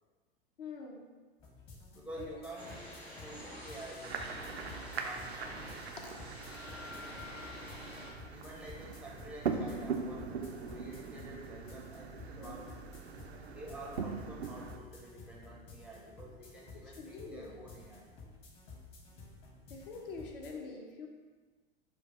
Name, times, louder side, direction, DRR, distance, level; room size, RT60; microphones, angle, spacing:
voice 1, 0.6-1.1 2.2-2.6 6.0-6.2 6.5-6.7 12.4-12.6 16.8-17.6 19.7-21.1, left 4 dB, 60° left, 1 dB, 0.8 m, -46 dB
sound 1, 1.4-20.5, left 3 dB, 40° left, 1.1 m, -53 dB
voice 2, 1.9-5.6 8.3-12.8 13.5-18.1, right 1 dB, 5° right, -4 dB, 0.5 m, -49 dB
sound 2, 2.6-8.1, left 1 dB, 90° left, 1.4 m, -48 dB
sound 3, 4.0-14.8, right 5 dB, 80° right, 0.5 m, -41 dB
4.7 x 2.3 x 4.7 m, 1.3 s
figure-of-eight pair, 90°, 31 cm